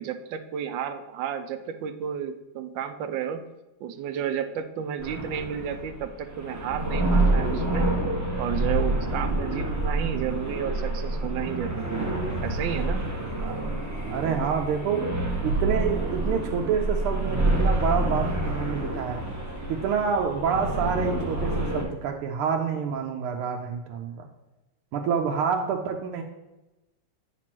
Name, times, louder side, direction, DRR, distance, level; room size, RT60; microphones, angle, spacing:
voice 1, 0.0-3.4 3.8-7.9 8.4-12.1 12.4-13.0, right 8 dB, 75° right, 8 dB, 1.2 m, -32 dB
sound 1, 5.0-21.8, right 2 dB, 15° right, 0.7 m, -27 dB
voice 2, 13.4-13.7 14.1-15.1 15.4-19.2 19.7-24.3 24.9-26.2, right 6 dB, 90° right, 2 dB, 1.5 m, -27 dB
8.9 x 3.0 x 5.9 m, 1.0 s
omnidirectional pair, 2.3 m